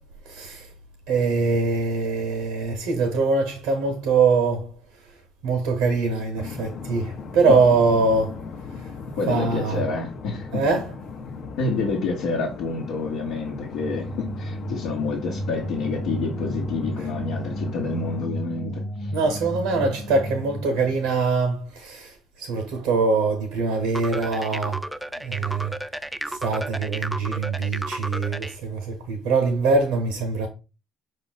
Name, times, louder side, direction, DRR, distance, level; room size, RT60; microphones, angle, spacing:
voice 1, 0.3-0.7 1.1-4.7 5.4-8.5 8.8-8.9 9.2-9.9 10.5-11.0 17.0-17.1 19.1-24.8 25.2-25.7 26.2-30.5, right 4 dB, 80° right, 0.7 m, -23 dB
sound 1, 6.3-18.3, left 5 dB, 55° left, 0.7 m, -38 dB
voice 2, 9.2-10.7 11.6-19.1, left 3 dB, 80° left, 1.0 m, -28 dB
sound 2, 13.7-21.1, equal, 10° left, 0.9 m, -33 dB
sound 3, 23.9-28.6, right 1 dB, 10° right, 0.3 m, -33 dB
5.2 x 2.5 x 3.9 m
supercardioid pair, 65°, 0 cm